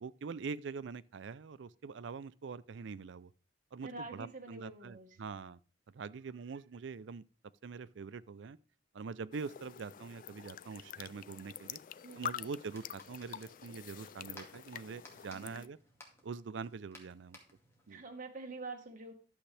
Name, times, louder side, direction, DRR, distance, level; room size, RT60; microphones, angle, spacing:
voice 1, 0.0-3.3 3.7-5.6 5.9-7.2 7.6-8.6 8.9-11.8 12.2-15.8 16.2-17.4 17.9-18.0, right 5 dB, 70° right, 0.4 m, -44 dB
voice 2, 3.8-5.2 12.0-12.3 15.3-15.7 17.9-19.1, right 3 dB, 45° right, 1.5 m, -46 dB
sound 1, 9.3-15.7, left 9 dB, 45° left, 0.4 m, -47 dB
sound 2, 12.5-18.0, left 1 dB, 15° left, 2.0 m, -59 dB
11.5 x 7.2 x 3.3 m
head